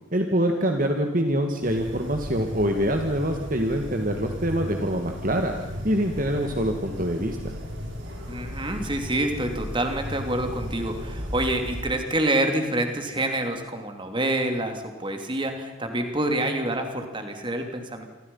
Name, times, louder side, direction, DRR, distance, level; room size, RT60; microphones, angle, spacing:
voice 1, 0.1-5.5 5.8-7.5, equal, 40° right, 4 dB, 1.9 m, -25 dB
sound 1, 1.6-11.8, equal, 60° right, 5.8 m, -36 dB
voice 2, 8.3-18.0, right 1 dB, 25° right, 5 dB, 3.0 m, -27 dB
28.5 x 24.5 x 5.6 m, 1.2 s
head